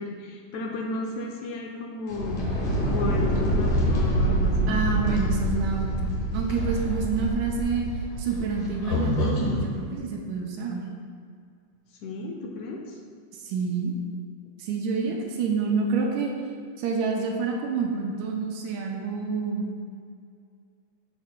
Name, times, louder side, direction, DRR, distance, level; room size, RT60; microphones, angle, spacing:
voice 1, 0.0-2.4 2.9-5.3 12.0-13.0, left 2 dB, 75° left, 0 dB, 1.8 m, -33 dB
sound 1, 2.1-9.6, right 1 dB, 55° left, 1.8 m, -26 dB
voice 2, 4.7-7.9 8.2-10.9 13.3-13.9 14.6-16.3 16.8-19.6, right 4 dB, 80° right, 1 dB, 2.0 m, -28 dB
12.0 x 4.6 x 2.2 m, 2.3 s
omnidirectional pair, 3.5 m